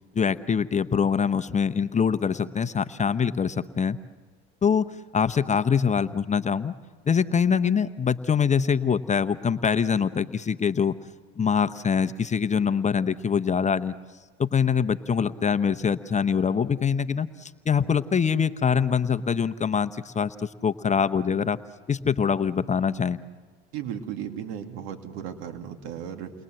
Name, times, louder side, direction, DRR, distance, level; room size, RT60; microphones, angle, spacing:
voice 1, 0.1-4.0 4.6-4.8 5.1-6.7 7.1-10.9 11.4-13.9 14.4-21.6 21.9-23.2, left 6 dB, 20° left, 11 dB, 0.8 m, -24 dB
voice 2, 23.7-26.3, right 9 dB, 75° right, 5 dB, 2.6 m, -35 dB
29.5 x 21.5 x 7.8 m, 1.4 s
supercardioid pair, 95°, 31 cm